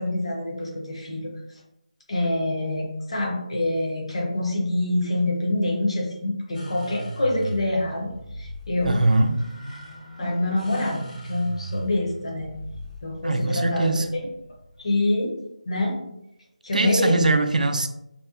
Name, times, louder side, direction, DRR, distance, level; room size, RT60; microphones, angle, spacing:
voice 1, 0.0-1.3 2.1-9.0 10.2-12.5 13.0-14.2 14.8-15.3 15.6-16.0 16.6-17.4, left 1 dB, 45° left, -1 dB, 0.7 m, -26 dB
sound 1, 6.5-14.9, right 1 dB, 90° left, 1.1 m, -38 dB
voice 2, 8.8-9.4 13.2-14.1 16.7-17.9, right 2 dB, 90° right, 8 dB, 0.3 m, -21 dB
2.8 x 2.1 x 2.3 m, 0.80 s
figure-of-eight pair, 175°, 4 cm